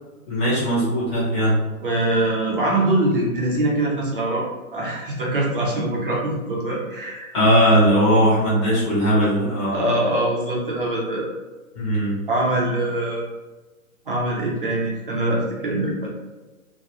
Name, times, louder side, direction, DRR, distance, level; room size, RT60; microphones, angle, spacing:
voice 1, 0.3-1.6 7.3-9.8 11.7-12.2, equal, 20° left, -10 dB, 0.8 m, -19 dB
voice 2, 1.8-4.5 4.7-7.3 9.7-11.3 12.3-13.2 14.1-16.1, right 1 dB, 40° right, -4 dB, 0.6 m, -23 dB
2.5 x 2.2 x 2.8 m, 1.2 s
hypercardioid pair, 170°, 44 cm